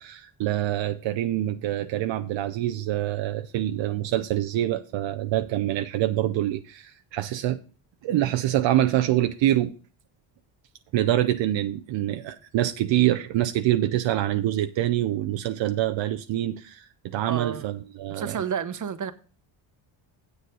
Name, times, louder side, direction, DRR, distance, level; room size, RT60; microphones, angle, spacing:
voice 1, 0.0-7.6 8.0-9.7 10.9-18.4, right 13 dB, 70° right, 0.7 m, -25 dB
voice 2, 17.3-17.7 18.1-19.1, right 7 dB, 40° right, 1.1 m, -30 dB
8.0 x 6.8 x 5.4 m
cardioid pair, 80°, 47 cm